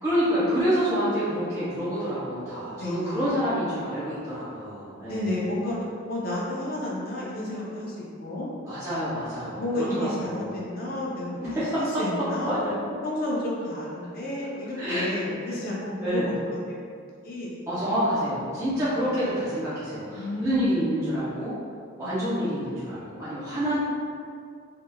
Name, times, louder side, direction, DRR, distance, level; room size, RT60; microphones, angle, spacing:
voice 1, 0.0-5.4 8.7-10.6 11.4-12.0 12.4-12.7 14.8-15.6 16.0-16.3 17.7-21.5 22.0-23.8, equal, 15° right, -13 dB, 0.6 m, -28 dB
voice 2, 2.7-3.2 5.1-5.8 6.1-8.5 9.5-12.6 13.0-16.4 17.2-17.6 18.7-18.8 20.2-20.8 22.0-22.7, left 1 dB, 45° left, -5 dB, 0.6 m, -31 dB
3.3 x 2.8 x 2.3 m, 2.3 s
head